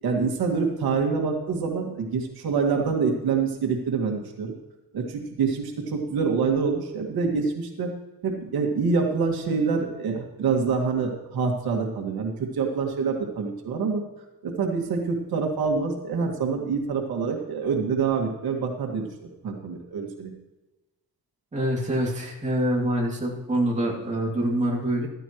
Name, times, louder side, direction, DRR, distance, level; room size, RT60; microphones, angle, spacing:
voice 1, 0.0-4.5 4.9-7.9 8.2-14.0 14.4-19.0 19.4-20.3, right 5 dB, 80° right, 2 dB, 2.0 m, -26 dB
voice 2, 21.5-25.1, right 1 dB, 20° right, -3 dB, 2.6 m, -25 dB
15.0 x 13.5 x 3.1 m, 1.1 s
wide cardioid pair, 160°, 36 cm